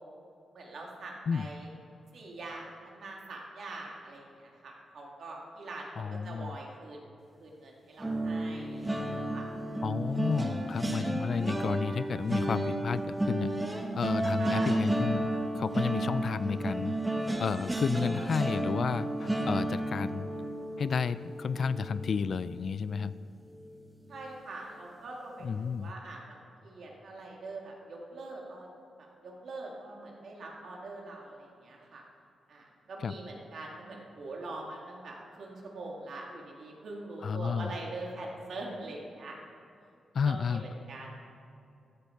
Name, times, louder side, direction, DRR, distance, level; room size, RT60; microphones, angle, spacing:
voice 1, 0.5-1.7 2.1-7.1 7.4-9.5 14.4-14.8 24.1-28.7 29.0-32.0 32.5-39.4 40.3-41.1, right 2 dB, 65° right, -1 dB, 2.0 m, -43 dB
voice 2, 6.0-6.6 9.8-13.5 13.9-16.9 17.4-20.3 20.8-23.1 25.4-25.9 33.0-33.1 37.2-37.7 40.1-40.6, left 6 dB, 55° left, 16 dB, 0.3 m, -31 dB
sound 1, 8.0-23.1 23.5-23.8 24.1-24.3, right 1 dB, 15° right, 1.0 m, -32 dB
14.5 x 8.4 x 4.4 m, 2.6 s
wide cardioid pair, 130°, 0 cm